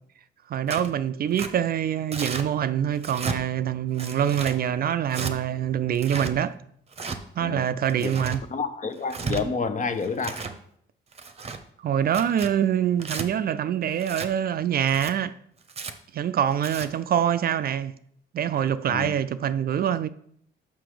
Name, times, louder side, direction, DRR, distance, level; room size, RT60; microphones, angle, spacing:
voice 1, 0.5-6.6 7.4-8.4 11.8-15.4 16.1-17.9 18.3-20.1, right 9 dB, 50° right, 0.4 m, -25 dB
Tearing, 0.7-0.9 1.4-1.5 2.1-2.5 3.0-3.4 4.0-4.6 5.1-5.3 5.9-6.3 6.9-7.2 7.9-8.4 9.0-9.4 10.0-10.6 11.1-11.6 12.1-12.5 13.0-13.3 14.0-14.3 14.8-15.1 15.7-15.9 16.5-16.9, right 4 dB, 30° right, 0.8 m, -33 dB
voice 2, 8.5-10.4 18.9-19.1, left 5 dB, 40° left, 0.8 m, -29 dB
5.9 x 5.9 x 5.0 m
cardioid pair, 90°, 20 cm